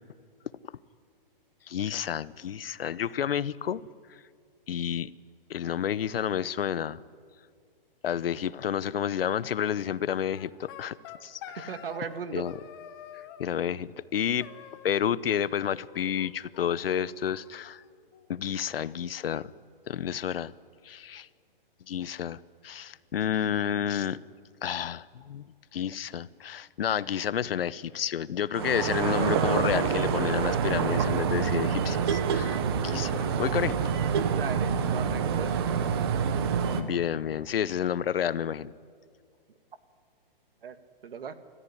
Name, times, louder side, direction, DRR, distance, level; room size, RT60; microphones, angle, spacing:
voice 1, 1.7-3.8 4.7-5.1 5.5-7.0 8.0-11.0 11.2-11.7 12.3-12.5 13.1-14.5 14.8-17.8 18.3-19.5 19.9-20.5 20.8-21.3 21.9-24.2 24.6-33.8 36.8-38.7, left 9 dB, 75° left, 19 dB, 0.8 m, -30 dB
sound 1, 10.3-12.2 12.5-13.5 14.4-15.2 15.4-16.3 16.5-16.6 16.9-17.0 17.3-18.3, left 10 dB, 25° left, 1.2 m, -47 dB
voice 2, 11.5-12.5 34.3-36.0 40.6-40.8 41.0-41.3, right 7 dB, 75° right, 11 dB, 1.8 m, -38 dB
sound 2, 28.5-36.8, right 6 dB, 25° right, 1.0 m, -27 dB
29.5 x 14.5 x 9.9 m, 2.1 s
hypercardioid pair, 170°, 29 cm